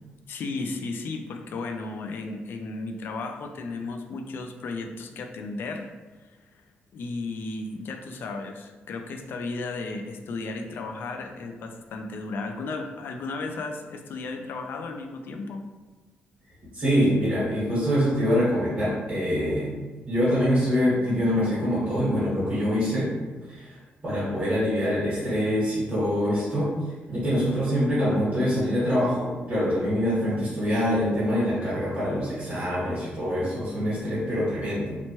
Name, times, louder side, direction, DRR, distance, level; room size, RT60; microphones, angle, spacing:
voice 1, 0.3-5.9 6.2-6.6 6.9-15.6, left 3 dB, 60° left, 5 dB, 0.3 m, -34 dB
voice 2, 16.7-19.8 20.1-23.1 23.5-23.7 24.0-26.7 27.1-35.0, equal, 30° right, -10 dB, 1.3 m, -24 dB
2.9 x 2.1 x 2.9 m, 1.3 s
cardioid pair, 125°, 4 cm